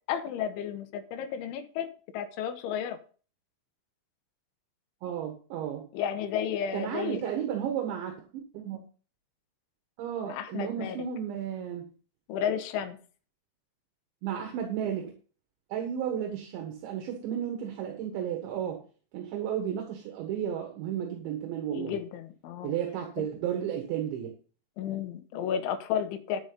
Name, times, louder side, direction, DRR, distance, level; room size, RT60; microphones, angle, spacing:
voice 1, 0.1-3.0 5.9-7.2 10.3-11.1 12.3-13.0 21.7-22.7 23.2-23.3 24.8-26.4, left 8 dB, 80° left, 3.3 m, -32 dB
voice 2, 5.0-5.9 6.7-8.8 10.0-11.9 14.2-15.1 15.7-18.8 19.1-22.0 22.6-24.3, right 9 dB, 75° right, 3.8 m, -33 dB
10.5 x 10.5 x 4.0 m
omnidirectional pair, 5.5 m